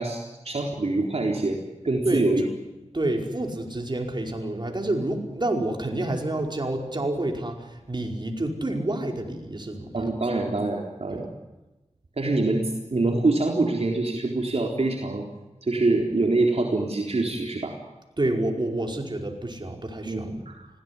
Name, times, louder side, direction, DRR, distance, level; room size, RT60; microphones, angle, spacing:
voice 1, 0.0-1.6 1.8-2.4 9.9-11.3 12.2-15.3 15.6-17.8 20.1-20.7, right 2 dB, 60° right, 1 dB, 3.9 m, -25 dB
voice 2, 2.9-10.0 11.1-11.2 18.2-20.3, right 1 dB, 40° right, 2 dB, 5.0 m, -28 dB
25.0 x 17.5 x 9.7 m, 1.0 s
cardioid pair, 50°, 12 cm